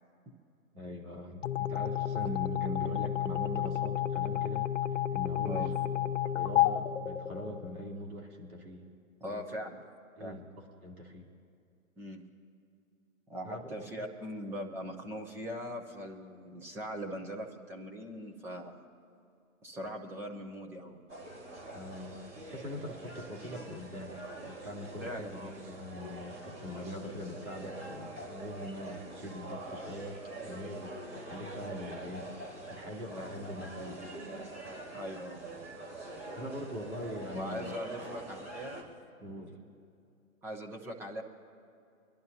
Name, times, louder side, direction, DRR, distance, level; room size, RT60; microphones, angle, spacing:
voice 1, 0.7-4.7 5.1-5.8 6.2-8.8 9.2-9.4 10.2-11.3 13.4-14.0 21.7-30.2 30.4-34.0 36.4-37.8 39.2-39.7, left 1 dB, 80° right, -1 dB, 3.0 m, -42 dB
sound 1, 1.4-7.9, left 11 dB, 60° left, 0.7 m, -31 dB
voice 2, 9.2-9.7 10.2-10.4 12.0-12.2 13.3-18.8 19.6-21.0 25.0-25.5 33.1-33.3 34.9-35.4 37.3-38.8 40.4-41.2, equal, 5° right, 0 dB, 0.6 m, -41 dB
sound 2, 21.1-38.8, right 2 dB, 25° right, 3.9 m, -44 dB
24.5 x 11.5 x 2.8 m, 2.5 s
hypercardioid pair, 145°, 43 cm